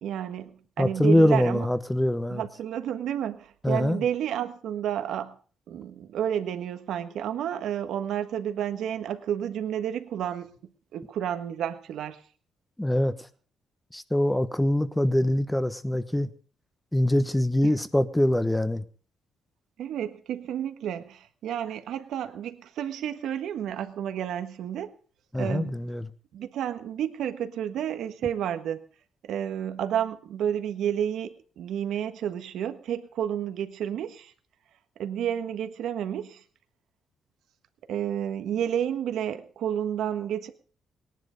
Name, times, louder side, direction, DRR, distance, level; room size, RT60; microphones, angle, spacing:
voice 1, 0.0-1.7 2.3-5.3 5.7-10.5 10.9-12.2 19.8-24.9 25.3-25.7 26.3-28.8 29.3-34.3 35.0-36.4 37.9-40.5, right 9 dB, 75° right, 1.4 m, -31 dB
voice 2, 0.8-2.4 3.6-4.0 12.8-13.3 13.9-16.3 16.9-18.8 25.3-26.1, left 1 dB, 5° left, 1.2 m, -24 dB
18.5 x 11.0 x 5.2 m
cardioid pair, 90°, 0 cm